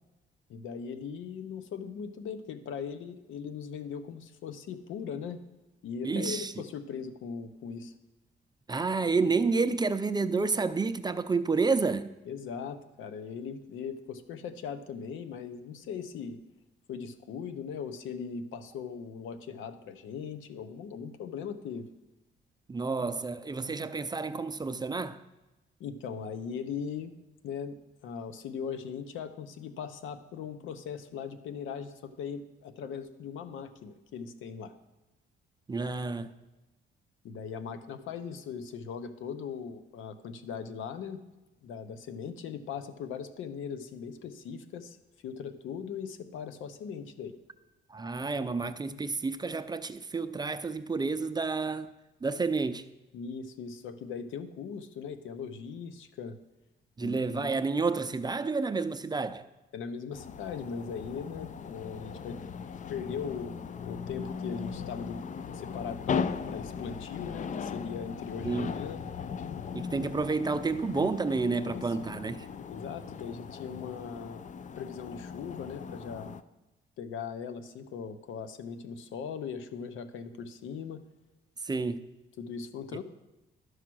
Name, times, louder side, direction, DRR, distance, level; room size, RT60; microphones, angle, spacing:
voice 1, 0.5-5.4 5.8-7.9 12.3-16.4 16.9-21.9 25.8-27.1 27.4-27.8 28.0-34.7 37.2-41.2 41.6-45.0 45.2-47.4 53.1-56.4 57.0-57.5 59.7-62.5 62.9-63.5 63.8-69.0 71.3-71.8 72.7-74.4 74.8-76.3 77.0-81.0 82.4-83.0, left 6 dB, 80° left, 0.8 m, -39 dB
voice 2, 6.0-6.5 8.7-12.1 22.7-25.2 35.7-36.3 47.9-51.9 52.2-52.9 57.0-59.5 68.4-68.8 69.7-72.5 81.6-82.0, right 4 dB, 20° right, 0.5 m, -30 dB
sound 1, 60.1-76.4, left 6 dB, 40° left, 0.4 m, -38 dB
12.5 x 4.8 x 6.1 m
cardioid pair, 90°, 20 cm